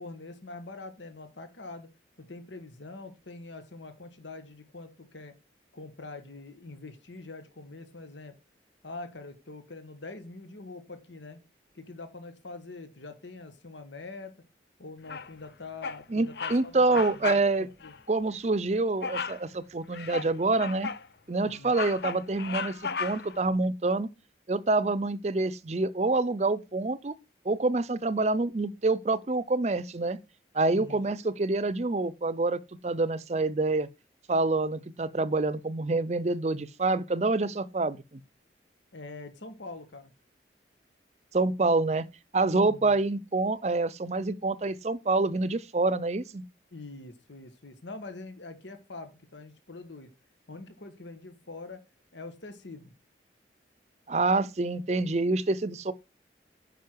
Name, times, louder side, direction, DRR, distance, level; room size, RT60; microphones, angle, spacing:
voice 1, 0.0-1.9 2.2-5.3 5.7-8.3 8.8-11.4 11.7-14.3 14.8-17.9 21.4-21.7 30.6-31.0 38.9-40.1 42.6-43.0 46.7-50.1 50.5-51.8 52.1-52.9, left 3 dB, 85° left, 1.5 m, -44 dB
Bird vocalization bird call bird song, 15.1-15.5 15.8-16.0 16.3-16.6 16.9-17.5 17.8-18.0 19.0-19.4 19.9-21.1 21.5-23.4, left 5 dB, 65° left, 0.6 m, -35 dB
voice 2, 16.1-17.7 18.1-20.9 21.3-24.1 24.5-27.1 27.4-30.2 30.5-33.9 34.3-38.2 41.3-42.1 42.3-46.4 54.1-55.9, right 3 dB, 35° right, 0.5 m, -27 dB
9.4 x 5.6 x 4.6 m
head